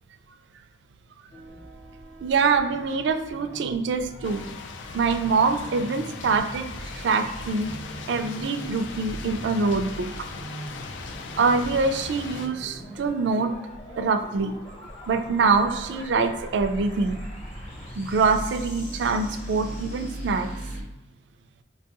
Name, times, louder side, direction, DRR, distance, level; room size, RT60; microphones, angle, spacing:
sound 1, 1.3-20.8, equal, 35° left, 0.8 m, -40 dB
voice 1, 2.2-4.5 4.9-7.7 8.1-10.1 11.4-13.5 14.0-14.5 15.1-17.2 17.9-20.5, right 4 dB, 70° right, 8 dB, 0.3 m, -24 dB
sound 2, 4.2-12.5, left 5 dB, 80° left, 0.4 m, -40 dB
4.5 x 2.3 x 2.9 m, 0.97 s
head